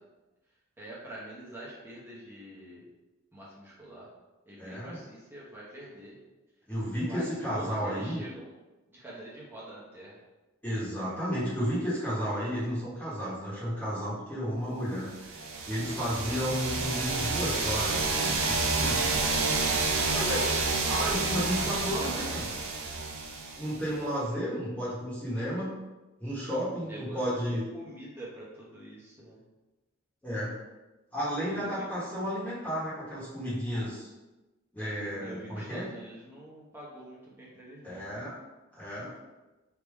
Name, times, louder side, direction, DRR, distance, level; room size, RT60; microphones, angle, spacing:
voice 1, 0.8-2.8 3.3-4.1 4.5-6.2 7.1-8.5 8.9-10.2 15.8-16.2 23.9-24.4 26.9-27.2 27.7-29.4 31.5-31.9 34.8-38.0, right 1 dB, 10° right, -7 dB, 1.0 m, -46 dB
voice 2, 4.6-5.0 6.7-8.2 10.6-15.3 15.6-19.3 20.1-20.5 20.9-22.5 23.6-25.7 26.2-27.6 30.2-30.5 31.1-34.1 34.7-35.9 37.8-38.3 38.7-39.1, equal, 5° left, -10 dB, 1.3 m, -32 dB
sound 1, 15.2-23.9, right 3 dB, 70° right, 0.7 m, -29 dB
3.6 x 2.9 x 4.6 m, 1.1 s
head